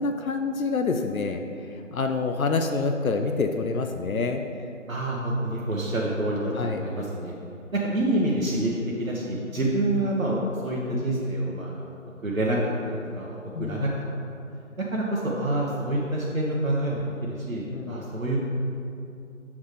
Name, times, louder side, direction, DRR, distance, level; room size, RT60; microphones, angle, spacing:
voice 1, 0.0-1.4 1.9-4.4 6.6-6.8 13.5-13.9 17.7-18.1, left 4 dB, 80° left, 5 dB, 0.6 m, -27 dB
voice 2, 4.9-7.3 7.7-8.7 9.0-11.8 12.2-12.6 12.9-13.9 14.8-18.4, right 1 dB, 75° right, -4 dB, 1.0 m, -27 dB
7.1 x 6.0 x 3.2 m, 2.6 s
figure-of-eight pair, 165°, 41 cm